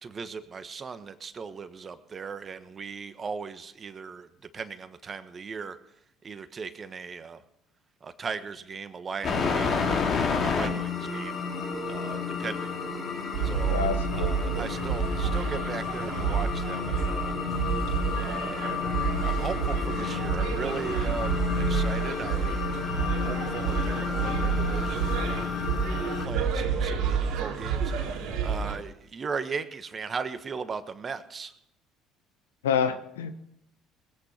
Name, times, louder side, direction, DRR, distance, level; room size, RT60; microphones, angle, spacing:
voice 1, 0.0-4.3 4.5-5.8 6.2-7.4 8.0-11.4 11.8-12.8 13.4-17.4 18.2-18.7 19.2-25.5 26.0-27.9 28.4-31.5, right 5 dB, 40° right, 11 dB, 1.3 m, -38 dB
sound 1, 9.2-26.3, left 5 dB, 50° left, 3.5 m, -31 dB
sound 2, 13.3-28.8, right 6 dB, 70° right, 2.8 m, -29 dB
voice 2, 13.7-14.3 32.6-33.4, left 7 dB, 90° left, 10 dB, 1.1 m, -27 dB
20.5 x 9.0 x 5.8 m, 0.79 s
hypercardioid pair, 60°, 0 cm